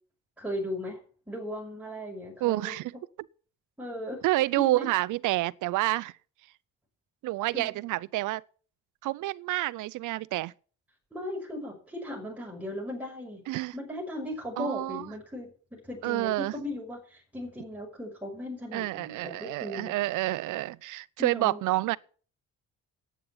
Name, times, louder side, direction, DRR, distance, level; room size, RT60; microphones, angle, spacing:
voice 1, 0.4-1.0 1.3-2.7 3.8-4.2 4.6-4.9 7.5-7.8 11.1-13.4 13.7-19.9 21.2-21.6, left 1 dB, 5° right, 6.0 m, -37 dB
voice 2, 2.4-3.0 4.2-6.1 7.2-8.4 9.0-10.5 13.5-13.7 14.6-15.1 16.0-16.5 18.7-22.0, right 18 dB, 90° right, 0.6 m, -28 dB
10.5 x 9.3 x 8.8 m
cardioid pair, 90°, 30 cm